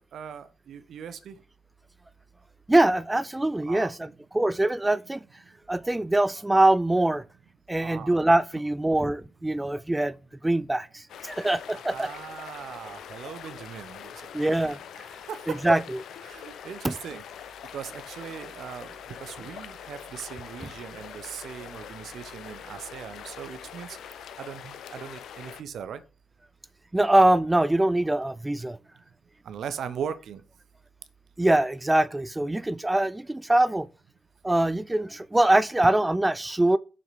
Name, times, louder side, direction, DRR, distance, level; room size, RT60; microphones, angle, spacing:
voice 1, 0.1-1.3 3.7-3.9 7.8-8.1 11.8-14.1 15.3-15.8 16.2-17.2 17.7-18.9 19.2-23.9 24.4-26.0 29.5-30.4, right 8 dB, 65° right, 0.8 m, -38 dB
voice 2, 2.7-5.2 5.7-7.2 7.7-10.2 10.4-12.1 14.3-15.1 15.6-15.8 16.8-16.9 26.9-28.8 31.4-33.9 34.4-36.8, right 1 dB, 15° right, 0.4 m, -23 dB
sound 1, 11.1-25.6, left 8 dB, 70° left, 0.8 m, -43 dB
7.0 x 5.9 x 4.8 m
hypercardioid pair, 40°, 0 cm